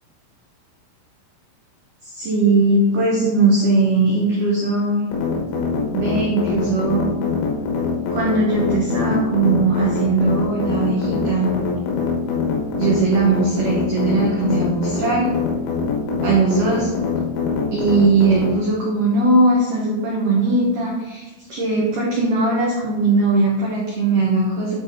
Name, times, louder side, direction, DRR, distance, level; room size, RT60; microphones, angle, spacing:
voice 1, 2.0-5.0 5.9-7.1 8.1-11.5 12.8-15.3 16.2-16.9 17.7-24.8, right 3 dB, 75° right, -4 dB, 1.9 m, -19 dB
sound 1, 5.1-18.5, left 5 dB, 85° left, 4.0 m, -23 dB
10.5 x 4.1 x 4.1 m, 1.2 s
omnidirectional pair, 5.8 m